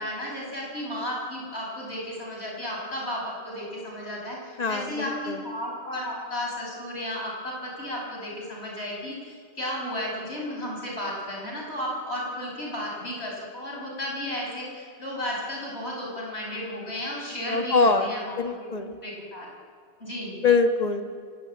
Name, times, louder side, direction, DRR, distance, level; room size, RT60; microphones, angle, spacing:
voice 1, 0.0-19.5 20.0-20.4, left 1 dB, 70° left, -1 dB, 6.6 m, -34 dB
voice 2, 4.6-5.4 17.5-18.1 18.4-19.0 20.4-21.0, left 4 dB, 35° left, 6 dB, 1.6 m, -23 dB
26.0 x 18.5 x 8.8 m, 2.1 s
omnidirectional pair, 1.1 m